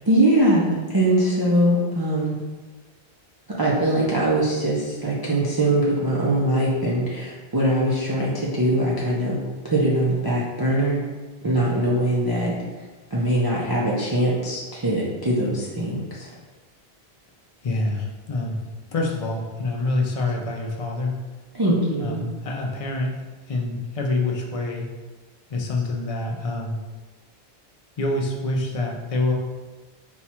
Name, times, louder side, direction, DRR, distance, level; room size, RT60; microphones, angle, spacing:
voice 1, 0.1-2.3 3.6-9.4 9.6-11.0 11.4-12.5 13.1-16.3 21.5-22.2, right 1 dB, 30° right, -6 dB, 0.5 m, -22 dB
voice 2, 17.6-18.6 18.9-21.2 22.0-23.1 23.5-24.9 25.5-26.8 28.0-29.3, left 2 dB, 40° left, 0 dB, 0.6 m, -26 dB
4.3 x 2.3 x 4.2 m, 1.3 s
omnidirectional pair, 1.0 m